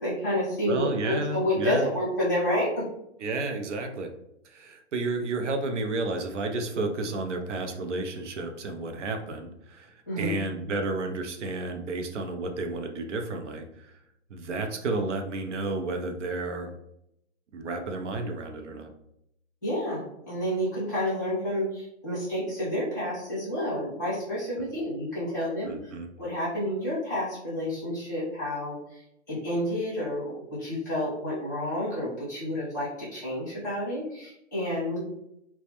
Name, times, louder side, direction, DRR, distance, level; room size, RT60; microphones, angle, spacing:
voice 1, 0.0-2.8 10.1-10.3 19.6-25.9 26.2-29.0 29.3-35.0, equal, 15° left, -10 dB, 0.6 m, -29 dB
voice 2, 0.7-1.9 3.2-4.1 4.4-13.9 14.3-16.7 17.5-18.9 24.6-24.8 25.7-26.1, right 2 dB, 85° right, 5 dB, 0.6 m, -32 dB
2.2 x 2.1 x 2.8 m, 0.78 s
hypercardioid pair, 180°, 35 cm